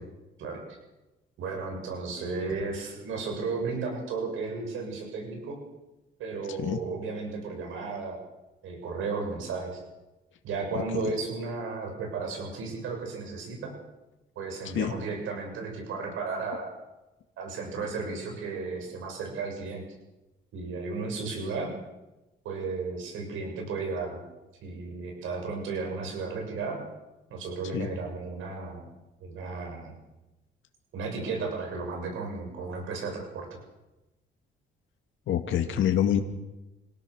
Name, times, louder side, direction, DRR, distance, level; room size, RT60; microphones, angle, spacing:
voice 1, 1.4-5.6 6.2-8.2 8.6-9.8 10.4-13.7 14.4-16.7 17.4-19.8 20.5-21.7 22.4-24.2 24.6-26.8 27.3-28.9 29.2-30.0 30.9-33.5, right 4 dB, 85° right, 2 dB, 7.1 m, -34 dB
voice 2, 35.3-36.2, left 10 dB, 75° left, 4 dB, 2.2 m, -25 dB
27.5 x 17.5 x 6.5 m, 1.0 s
cardioid pair, 90°, 20 cm